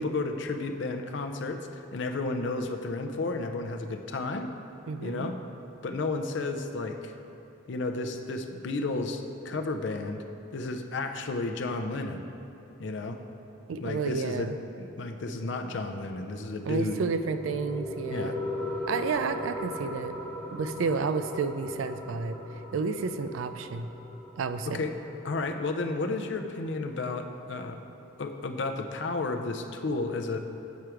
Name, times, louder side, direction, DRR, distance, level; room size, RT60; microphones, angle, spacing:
voice 1, 0.0-4.5 5.0-5.3 5.8-7.1 7.7-10.2 10.5-12.3 12.8-13.2 13.8-17.0 18.1-18.4 24.7-24.9 25.2-27.8 28.2-30.4, left 3 dB, 65° left, 6 dB, 0.5 m, -32 dB
voice 2, 4.9-5.3 13.7-14.6 16.7-18.4 18.9-20.1 20.5-22.4 22.7-23.9 24.4-24.9, right 4 dB, 85° right, 10 dB, 0.4 m, -31 dB
sound 1, 16.6-27.6, left 1 dB, 5° left, 0.7 m, -39 dB
8.2 x 4.5 x 4.9 m, 2.8 s
head